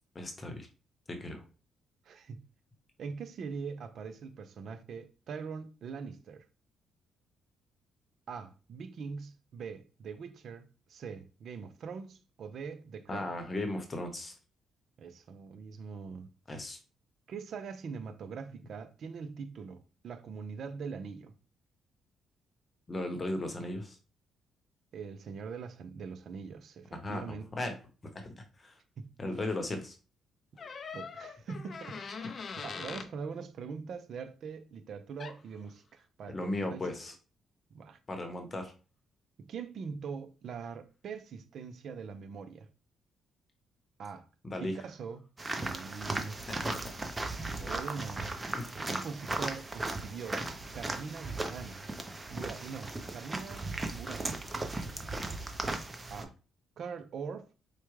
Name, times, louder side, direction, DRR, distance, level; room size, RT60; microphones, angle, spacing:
voice 1, 0.1-0.7 1.1-1.4 13.1-14.3 16.5-16.8 22.9-24.0 26.9-27.7 28.1-28.7 29.2-30.0 36.3-37.1 38.1-38.7 44.4-44.7 46.5-46.9 48.5-48.8, left 1 dB, 30° left, 0.8 m, -36 dB
voice 2, 2.1-2.4 3.0-6.5 8.3-13.3 15.0-16.3 17.3-21.3 24.9-27.5 29.0-29.1 30.9-36.9 37.7-38.0 39.4-42.7 44.0-44.2 44.6-46.4 47.6-48.3 48.7-50.4 50.7-51.8 52.3-54.4 56.1-56.3 56.8-57.5, right 5 dB, 65° right, 0.5 m, -42 dB
sound 1, 30.6-33.1 35.2-35.4, left 5 dB, 45° left, 0.5 m, -42 dB
sound 2, 45.4-56.2, right 2 dB, 20° right, 0.7 m, -37 dB
4.6 x 2.2 x 3.1 m
cardioid pair, 90°, 0 cm